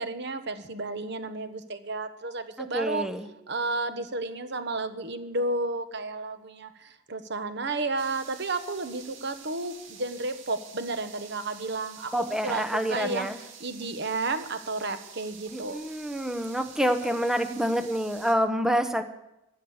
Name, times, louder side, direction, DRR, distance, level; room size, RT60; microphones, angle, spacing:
voice 1, 0.0-3.1 3.5-12.1 12.4-15.8, right 2 dB, 65° right, 9 dB, 1.2 m, -32 dB
voice 2, 2.6-3.3 12.1-13.4 15.5-19.0, equal, 5° right, 7 dB, 0.9 m, -27 dB
sound 1, 8.0-18.3, right 6 dB, 85° right, 2.1 m, -48 dB
15.0 x 10.0 x 7.3 m, 0.90 s
head